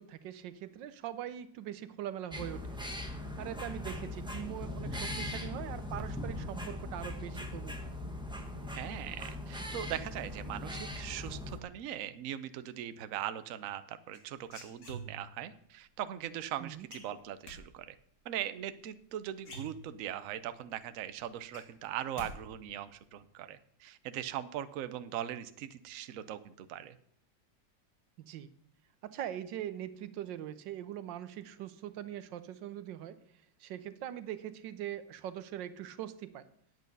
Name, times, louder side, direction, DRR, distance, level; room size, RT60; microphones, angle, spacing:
voice 1, 0.0-2.8 3.4-7.9 16.6-16.9 28.3-28.5 29.0-33.2 33.6-36.5, right 11 dB, 90° right, 13 dB, 1.4 m, -42 dB
sound 1, 2.3-11.6, left 1 dB, 5° right, 0.7 m, -40 dB
voice 2, 8.7-18.0 18.2-26.9, right 11 dB, 65° right, 12 dB, 0.9 m, -40 dB
sound 2, 14.1-15.4 16.9-17.6 19.0-19.1 19.4-20.2 20.6-20.7 21.1-22.3 22.6-23.0, right 1 dB, 70° left, 2.7 m, -47 dB
9.1 x 8.4 x 5.3 m, 0.67 s
omnidirectional pair, 1.9 m